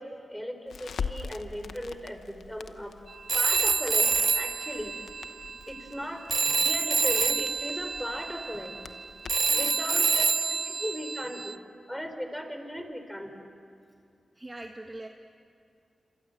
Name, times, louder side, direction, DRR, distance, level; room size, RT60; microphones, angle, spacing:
voice 1, 0.0-2.9 3.3-5.0 5.7-8.8 9.5-11.6 11.9-13.3, equal, 5° left, 6 dB, 3.8 m, -37 dB
Crackle, 0.7-9.6, left 5 dB, 85° left, 0.9 m, -43 dB
Telephone, 3.3-6.0 6.3-11.6, right 5 dB, 60° right, 0.6 m, -27 dB
voice 2, 9.5-10.1 14.3-15.1, right 2 dB, 25° right, 3 dB, 1.5 m, -43 dB
28.5 x 25.5 x 7.8 m, 2.4 s
cardioid pair, 65°, 0 cm